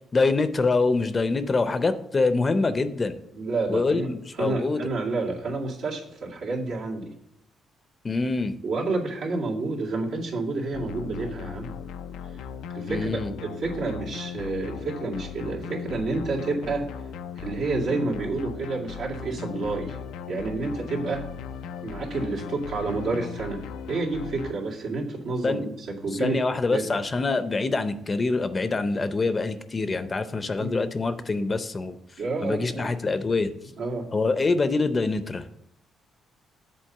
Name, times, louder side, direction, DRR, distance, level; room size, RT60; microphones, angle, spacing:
voice 1, 0.1-3.2 3.7-4.8 8.0-8.5 12.9-13.3 25.4-25.7 26.2-32.0 32.4-33.5 34.1-35.5, left 3 dB, 30° left, 11 dB, 0.6 m, -25 dB
voice 2, 3.3-4.1 4.4-7.1 8.6-11.7 12.7-16.9 17.4-20.0 20.3-21.2 21.8-26.4 26.7-26.9 30.6-30.8 32.2-32.9 33.8-34.1, right 3 dB, 80° right, -4 dB, 2.1 m, -29 dB
sound 1, 10.7-24.5, left 8 dB, 90° left, 0.4 m, -38 dB
7.6 x 4.1 x 6.5 m, 0.80 s
cardioid pair, 90°, 0 cm